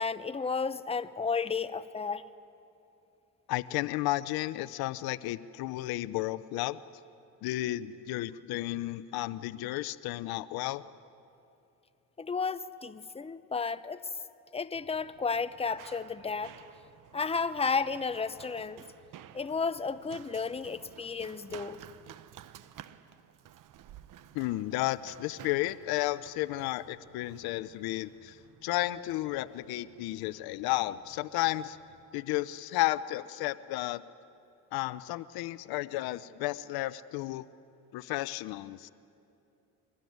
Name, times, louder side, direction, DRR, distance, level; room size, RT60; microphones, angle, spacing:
voice 1, 0.0-2.2 12.2-14.0 14.5-16.6 17.1-18.8 19.3-21.8, left 5 dB, 15° left, 13 dB, 0.8 m, -32 dB
voice 2, 3.5-6.8 7.4-10.9 24.3-31.8 32.1-34.0 34.7-37.4 37.9-38.9, left 17 dB, 75° left, 16 dB, 0.7 m, -33 dB
Run, 14.7-32.0, right 11 dB, 55° right, 1.1 m, -54 dB
23.5 x 20.0 x 9.4 m, 2.7 s
supercardioid pair, 85°, 37 cm